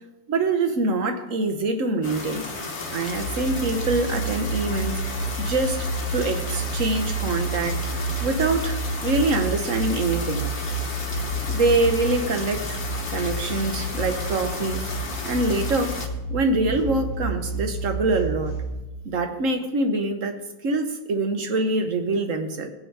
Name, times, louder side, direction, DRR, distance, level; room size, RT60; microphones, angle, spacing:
voice 1, 0.3-2.6 2.9-10.5 11.5-12.8 13.1-14.8 15.2-16.0 16.3-18.6 19.0-22.7, right 2 dB, 60° right, 6 dB, 1.3 m, -25 dB
sound 1, 2.0-16.1, left 3 dB, 50° left, 1.4 m, -34 dB
sound 2, 3.0-18.7, right 2 dB, 90° right, 3.7 m, -30 dB
18.0 x 6.3 x 4.7 m, 1.0 s
omnidirectional pair, 1.6 m